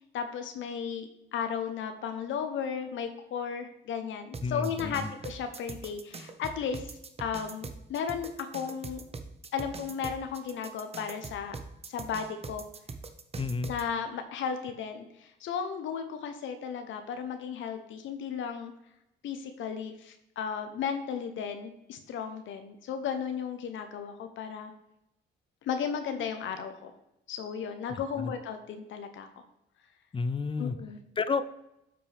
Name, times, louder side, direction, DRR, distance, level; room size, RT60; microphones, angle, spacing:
voice 1, 0.1-6.9 7.2-9.0 9.5-11.5 11.9-12.6 13.7-18.7 19.2-24.7 25.6-26.9 27.3-29.3 30.6-31.0, left 7 dB, 75° left, 7 dB, 0.8 m, -35 dB
sound 1, 4.3-13.8, right 4 dB, 30° right, 0.8 m, -42 dB
voice 2, 4.4-5.1 13.4-13.7 27.9-28.3 30.1-30.8 31.2-31.4, left 4 dB, 25° left, 12 dB, 0.5 m, -31 dB
7.9 x 6.0 x 3.4 m, 0.83 s
cardioid pair, 90°, 20 cm